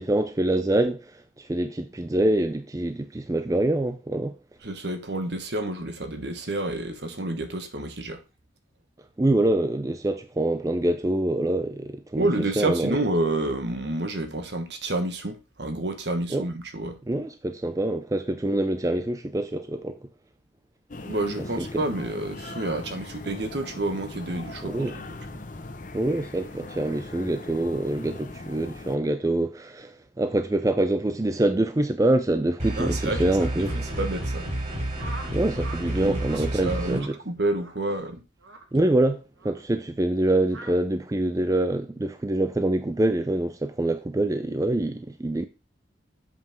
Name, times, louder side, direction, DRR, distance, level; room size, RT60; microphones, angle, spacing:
voice 1, 0.0-4.4 9.2-13.0 16.3-16.5 17.1-20.0 21.4-21.7 24.6-24.9 25.9-33.9 35.3-37.2 38.7-45.5, right 1 dB, 15° right, 0.4 m, -25 dB
voice 2, 4.6-8.2 12.2-17.0 21.1-25.0 32.8-33.2 33.5-33.6 34.0-34.5 36.0-36.2 36.6-38.2, right 2 dB, 60° right, 1.3 m, -29 dB
sound 1, 20.9-29.0, left 2 dB, 40° left, 0.8 m, -40 dB
sound 2, 32.6-37.0, right 1 dB, 40° right, 3.3 m, -30 dB
sound 3, 35.0-35.8 36.1-36.4 36.9-37.2 37.5-37.8 38.4-38.6 39.4-39.6 40.5-40.7, right 2 dB, 85° right, 1.8 m, -42 dB
7.6 x 5.8 x 4.4 m
head